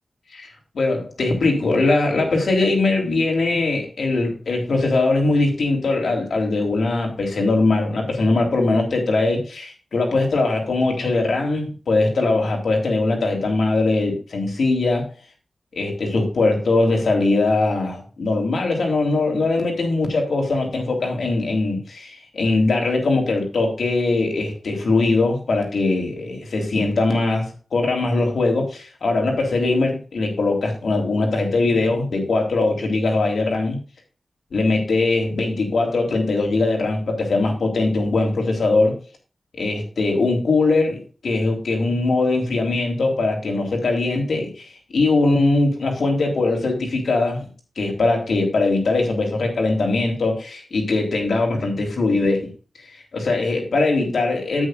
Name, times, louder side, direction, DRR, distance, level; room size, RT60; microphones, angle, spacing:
voice 1, 0.7-15.1 15.7-33.8 34.5-39.0 39.6-47.5 47.8-52.5 53.1-54.7, left 3 dB, 80° left, 1 dB, 3.7 m, -21 dB
12.5 x 8.8 x 2.5 m, 0.35 s
wide cardioid pair, 85°, 0 cm